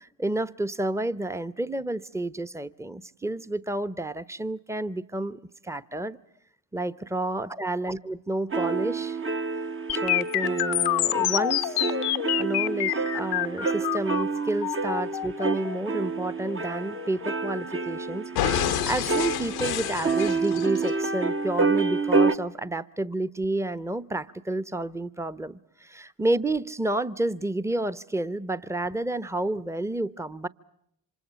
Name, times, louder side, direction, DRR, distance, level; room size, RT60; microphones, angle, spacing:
voice 1, 0.0-6.2 6.7-9.2 9.9-11.8 12.4-30.5, right 2 dB, 5° right, 1.0 m, -30 dB
sound 1, 8.5-22.4, right 4 dB, 30° right, 1.1 m, -28 dB
sound 2, 9.9-17.9 18.4-20.9, left 14 dB, 85° left, 1.1 m, -28 dB
28.0 x 26.0 x 7.0 m
hypercardioid pair, 40°, 42 cm